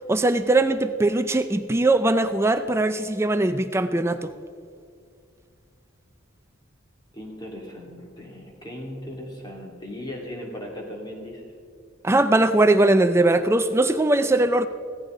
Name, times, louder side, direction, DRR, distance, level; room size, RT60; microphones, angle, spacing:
voice 1, 0.1-4.3 12.0-14.7, right 2 dB, 15° right, 10 dB, 0.4 m, -20 dB
voice 2, 7.1-11.4, left 1 dB, 20° left, -1 dB, 2.7 m, -37 dB
16.5 x 14.5 x 3.8 m, 2.2 s
head